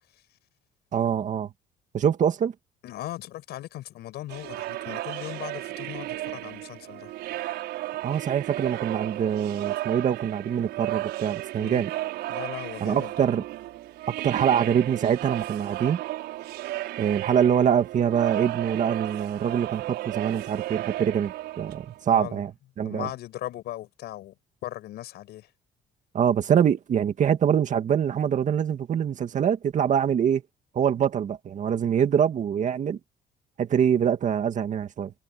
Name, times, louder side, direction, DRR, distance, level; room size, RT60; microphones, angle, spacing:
voice 1, 0.9-1.5 1.9-2.5 8.0-11.9 12.8-13.4 14.1-16.0 17.0-22.5 22.8-23.1 26.1-30.4 30.7-33.0 33.6-35.1, right 8 dB, 45° right, 2.2 m, -24 dB
voice 2, 2.8-7.1 11.6-11.8 12.3-13.3 22.1-22.4 22.8-24.3 24.6-25.5, left 14 dB, 75° left, 7.2 m, -38 dB
sound 1, 4.3-22.2, right 16 dB, 85° right, 6.1 m, -34 dB
cardioid pair, 110°, 17 cm